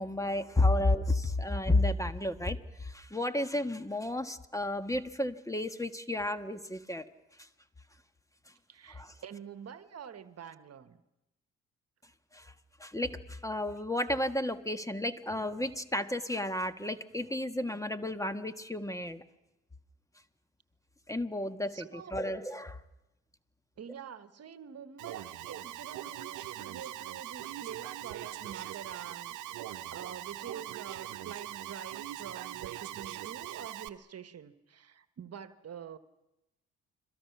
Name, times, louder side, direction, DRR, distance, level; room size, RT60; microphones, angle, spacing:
voice 1, 0.0-7.1 8.9-9.1 12.3-12.5 12.8-19.2 21.1-22.8, left 1 dB, 10° left, 1.4 m, -32 dB
voice 2, 8.7-11.0 21.7-22.1 23.8-29.4 29.9-36.0, right 8 dB, 55° right, 1.3 m, -46 dB
Alarm, 25.0-33.9, right 14 dB, 75° right, 1.0 m, -41 dB
30.0 x 23.0 x 5.9 m
hypercardioid pair, 50°, 31 cm